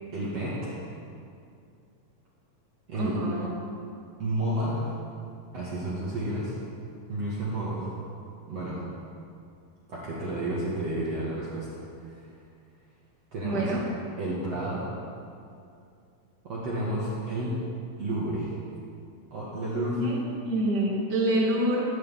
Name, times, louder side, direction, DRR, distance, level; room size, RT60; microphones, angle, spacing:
voice 1, 0.1-0.8 2.9-3.2 4.2-4.9 5.5-6.6 7.1-7.9 8.5-8.8 9.9-11.7 12.0-12.3 13.3-13.7 14.2-14.9 16.4-17.6 18.0-18.5 19.3-20.0, right 1 dB, 50° right, -8 dB, 2.7 m, -31 dB
voice 2, 3.0-3.5 13.4-13.8 20.0-20.2 20.4-22.0, right 1 dB, 30° right, -6 dB, 2.5 m, -26 dB
17.5 x 9.5 x 3.6 m, 2.4 s
omnidirectional pair, 4.1 m